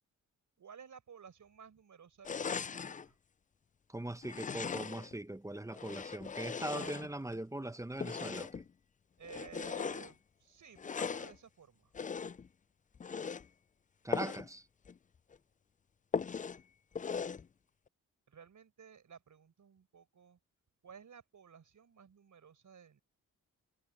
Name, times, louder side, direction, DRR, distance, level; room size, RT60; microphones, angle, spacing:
voice 1, 0.6-3.2 6.7-7.0 7.6-7.7 9.2-11.9 18.3-20.4 20.8-23.0, right 7 dB, 60° right, 4.8 m, -55 dB
sound 1, 2.2-3.1 4.2-5.2 5.7-7.4 8.0-8.7 9.2-10.1 10.8-11.4 11.9-12.5 13.0-13.5 14.1-14.5 14.9-15.0 15.3-15.4 16.1-16.6 17.0-17.5, left 6 dB, 25° left, 0.4 m, -39 dB
voice 2, 3.9-8.6 14.0-14.7, right 1 dB, 10° right, 0.9 m, -41 dB
cardioid pair, 65°, 34 cm